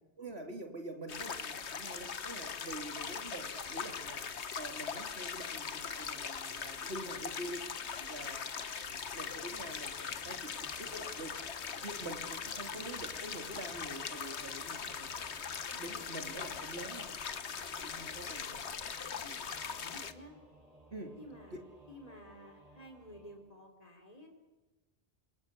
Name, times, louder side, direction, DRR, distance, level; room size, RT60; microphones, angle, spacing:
voice 1, 0.2-7.7 8.1-11.3 11.8-15.2 15.7-17.1 17.8-18.6 18.9-19.0 19.8-19.9 20.9-21.2, right 1 dB, 70° right, 5 dB, 3.4 m, -46 dB
sound 1, 1.1-20.1, left 6 dB, 80° left, 1.5 m, -41 dB
voice 2, 8.0-8.3 18.0-18.7 19.2-19.4 19.7-20.3 21.2-24.3, equal, 35° left, 2 dB, 4.2 m, -53 dB
Singing / Musical instrument, 9.5-23.4, right 2 dB, 35° right, 6.1 m, -59 dB
27.0 x 23.5 x 8.3 m, 1.2 s
omnidirectional pair, 1.1 m